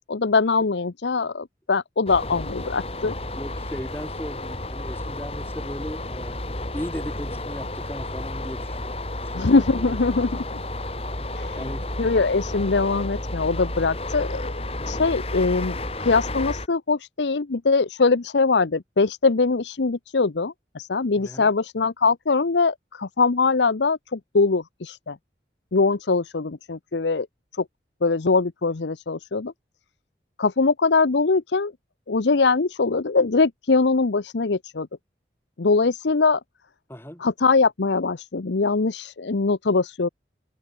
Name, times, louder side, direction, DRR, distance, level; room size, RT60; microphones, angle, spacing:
voice 1, 0.1-3.1 9.3-10.4 11.4-14.5 14.9-25.2 25.7-27.3 27.6-27.7 28.0-29.5 30.4-31.7 32.1-34.9 35.6-36.4 37.2-40.1, left 4 dB, 85° left, 0.8 m, -22 dB
sound 1, 2.1-16.7, left 1 dB, 35° left, 2.8 m, -32 dB
voice 2, 3.1-6.3 6.7-10.0 11.2-11.3 11.5-11.8 21.2-21.5 36.9-37.2, equal, 15° left, 2.8 m, -37 dB
head